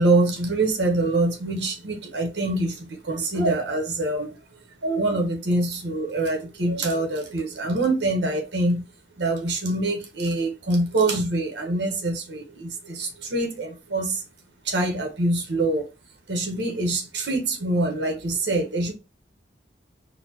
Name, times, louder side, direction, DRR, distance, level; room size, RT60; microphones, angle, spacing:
voice 1, 0.0-4.4 4.8-8.8 9.2-14.2 14.6-15.9 16.3-18.9, right 2 dB, 80° right, 1.1 m, -25 dB
4.1 x 2.2 x 2.9 m
head